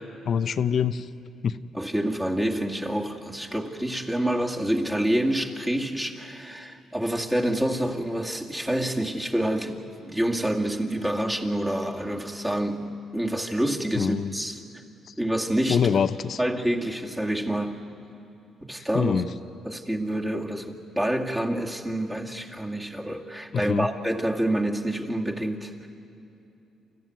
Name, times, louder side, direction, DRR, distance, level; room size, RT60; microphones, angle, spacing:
voice 1, 0.3-1.1 1.4-1.6 13.9-14.4 15.1-15.2 15.7-16.4 18.9-19.3 23.5-23.9, left 7 dB, 55° left, 13 dB, 0.7 m, -24 dB
voice 2, 1.7-14.6 15.2-15.8 16.4-17.8 18.6-19.2 19.6-25.7, right 1 dB, 10° right, 0 dB, 2.3 m, -27 dB
28.5 x 15.0 x 9.4 m, 2.9 s
cardioid pair, 90°, 0 cm